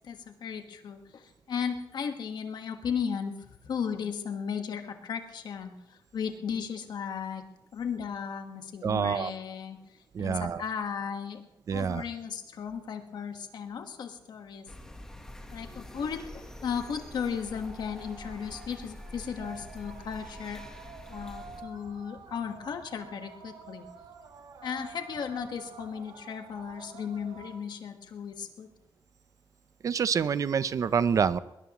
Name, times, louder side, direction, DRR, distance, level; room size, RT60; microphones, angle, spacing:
voice 1, 0.0-7.4 7.7-9.8 10.2-11.4 11.7-14.6 15.5-20.6 21.1-23.9 24.6-28.7, left 7 dB, 65° left, 6 dB, 1.5 m, -35 dB
voice 2, 8.8-9.3 10.1-10.6 11.7-12.0 29.8-31.4, right 7 dB, 45° right, 15 dB, 0.6 m, -27 dB
sound 1, 14.7-21.6, left 1 dB, 5° left, 1.3 m, -46 dB
sound 2, 15.8-27.6, right 4 dB, 75° right, 2.2 m, -49 dB
21.5 x 20.0 x 3.1 m, 0.89 s
wide cardioid pair, 170°, 8 cm